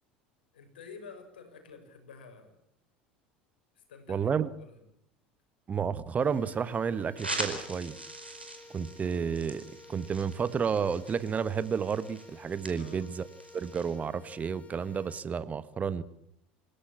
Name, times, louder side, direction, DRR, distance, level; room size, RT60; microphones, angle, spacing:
voice 1, 0.5-2.6 3.7-4.8 12.7-13.1, left 5 dB, 70° left, 7 dB, 6.3 m, -50 dB
voice 2, 4.1-4.5 5.7-7.9 8.7-13.3 13.5-16.0, right 6 dB, 25° right, 15 dB, 1.4 m, -31 dB
sound 1, 6.2-15.2, left 3 dB, 25° left, 3.1 m, -53 dB
sound 2, 7.2-14.0, right 2 dB, 90° right, 4.7 m, -42 dB
28.5 x 17.5 x 8.6 m, 0.74 s
figure-of-eight pair, 70°, 5 cm